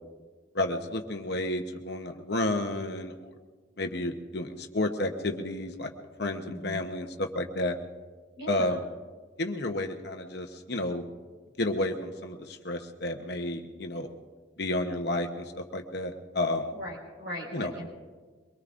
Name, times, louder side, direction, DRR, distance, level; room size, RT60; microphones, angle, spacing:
voice 1, 0.5-3.1 3.8-5.9 6.2-7.8 8.5-8.8 9.4-11.1 11.6-14.1 14.6-16.7 17.5-17.7, left 1 dB, 55° left, 4 dB, 0.9 m, -31 dB
voice 2, 6.5-6.9 8.4-8.6 16.7-17.9, equal, 65° right, -3 dB, 5.4 m, -39 dB
23.5 x 23.0 x 2.6 m, 1.4 s
head